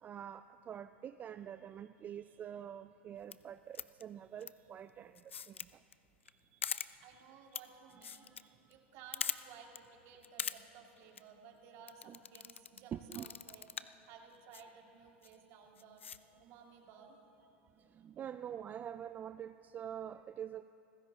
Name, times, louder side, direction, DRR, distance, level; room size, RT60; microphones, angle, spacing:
voice 1, 0.0-5.8 6.5-6.6 7.1-7.2 7.9-8.5 12.1-12.2 12.9-13.3 17.9-20.6, right 9 dB, 25° right, 11 dB, 0.3 m, -46 dB
sound 1, 3.2-3.3 3.7-4.0 4.4-4.5 5.1-5.7 5.9-6.0 6.2-6.3 6.6-6.9 7.5-7.6 7.9-8.4 8.7-8.8 9.1-9.4 9.7-9.8 10.2-10.6 11.0-11.2 11.9-12.8 13.1-13.9 14.5-14.6 15.2-15.3 15.8-16.2, left 7 dB, 85° left, 0.4 m, -40 dB
voice 2, 7.0-17.2, right 6 dB, 50° right, 1 dB, 2.3 m, -57 dB
28.0 x 15.5 x 2.9 m, 2.8 s
hypercardioid pair, 95°, 6 cm